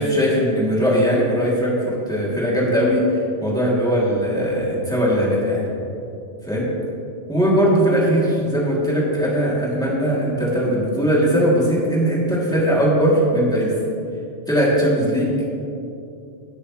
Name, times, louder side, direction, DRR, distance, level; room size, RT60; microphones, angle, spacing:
voice 1, 0.0-3.0 3.4-5.6 6.4-6.7 7.3-13.7 14.5-15.6, equal, 5° left, -6 dB, 2.6 m, -19 dB
16.5 x 8.6 x 3.1 m, 2.7 s
omnidirectional pair, 1.3 m